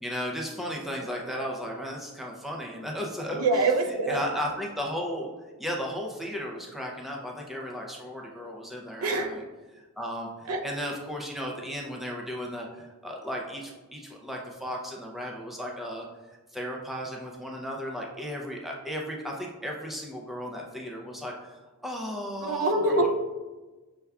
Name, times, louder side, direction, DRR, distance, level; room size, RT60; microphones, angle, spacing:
voice 1, 0.0-3.4 4.1-5.3 5.6-9.4 9.7-23.1, equal, ahead, -1 dB, 0.4 m, -35 dB
voice 2, 3.3-4.4 9.0-9.5 10.5-10.6 22.4-23.1, right 2 dB, 70° right, 4 dB, 0.5 m, -25 dB
6.5 x 2.3 x 2.3 m, 1.2 s
head